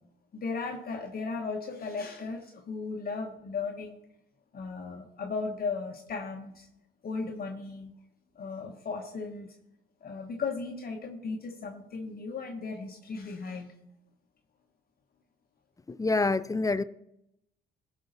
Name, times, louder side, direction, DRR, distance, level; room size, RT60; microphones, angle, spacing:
voice 1, 0.3-4.0 4.5-6.7 7.0-7.9 8.3-9.5 10.0-13.7, left 4 dB, 50° left, 1.3 m, -36 dB
voice 2, 15.9-16.8, left 3 dB, 15° left, 0.4 m, -26 dB
16.5 x 5.6 x 4.0 m
cardioid pair, 90°, 20 cm